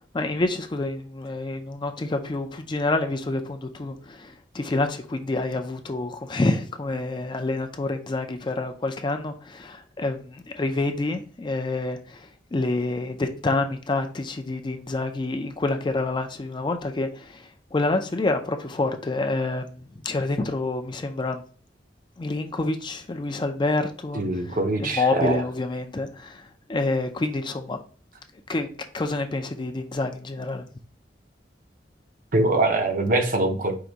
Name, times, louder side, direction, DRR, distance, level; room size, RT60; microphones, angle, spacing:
voice 1, 0.1-21.4 22.2-27.8 28.5-28.7 28.9-30.7, left 2 dB, 25° left, 0.4 m, -28 dB
voice 2, 24.1-25.4 32.3-33.8, right 2 dB, 50° right, 0.7 m, -23 dB
4.8 x 2.6 x 3.9 m
head